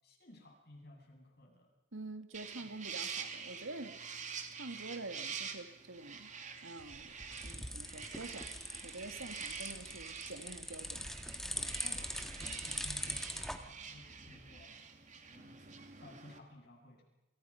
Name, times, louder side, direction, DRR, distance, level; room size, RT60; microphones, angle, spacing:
voice 1, 0.0-1.7 2.6-2.8 11.5-14.7 15.3-17.0, left 1 dB, 50° left, 7.8 m, -56 dB
voice 2, 1.9-4.0 4.5-6.3 6.6-7.1 7.4-8.5 8.8-11.1, right 2 dB, 75° right, 1.9 m, -47 dB
sound 1, 2.3-16.4, right 6 dB, 35° right, 2.7 m, -47 dB
sound 2, 6.8-13.6, left 1 dB, ahead, 1.9 m, -42 dB
30.0 x 27.0 x 5.7 m
head